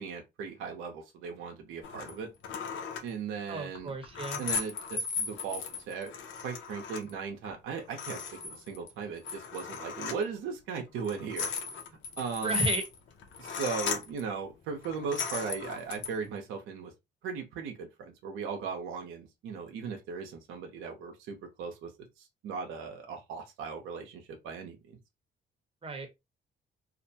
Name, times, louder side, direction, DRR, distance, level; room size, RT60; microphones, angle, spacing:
voice 1, 0.0-2.3 3.0-3.9 4.4-6.1 6.4-11.5 12.2-12.7 13.4-16.9 17.2-21.9 22.2-25.0, right 5 dB, 90° right, 0.7 m, -38 dB
sound 1, 1.8-2.2 2.4-3.1 3.7-7.1 7.4-7.5 7.8-8.9 9.2-10.2 11.0-14.2 14.8-16.1, left 5 dB, 75° left, 0.6 m, -36 dB
voice 2, 3.5-4.4 12.4-12.8 25.8-26.1, right 2 dB, 30° right, 0.9 m, -33 dB
2.5 x 2.1 x 2.7 m
cardioid pair, 90°, 20 cm